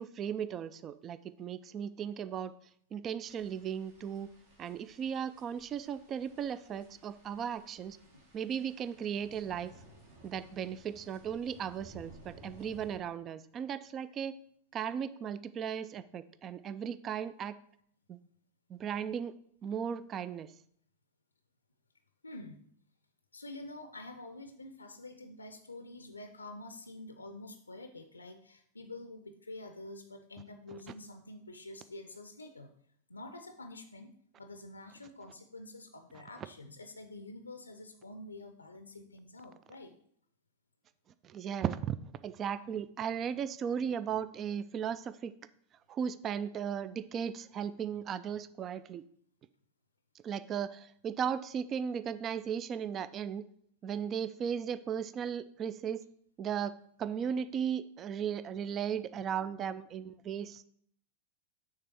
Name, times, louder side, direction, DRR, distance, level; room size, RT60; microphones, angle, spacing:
voice 1, 0.0-2.5 2.9-4.3 4.6-8.0 8.3-9.7 10.2-14.4 14.7-17.6 18.1-18.2 18.7-19.3 19.6-20.5 41.2-42.0 42.2-45.3 45.9-49.0 50.2-53.4 53.8-56.0 56.4-56.7 57.0-60.6, right 8 dB, 30° right, 14 dB, 0.3 m, -36 dB
sound 1, 3.2-13.0, right 2 dB, 55° right, 1.8 m, -57 dB
voice 2, 22.2-22.6 23.3-32.7 33.1-34.1 34.4-39.9, left 2 dB, 80° left, 7 dB, 0.5 m, -47 dB
6.5 x 3.4 x 6.0 m, 0.64 s
figure-of-eight pair, 90°, 0 cm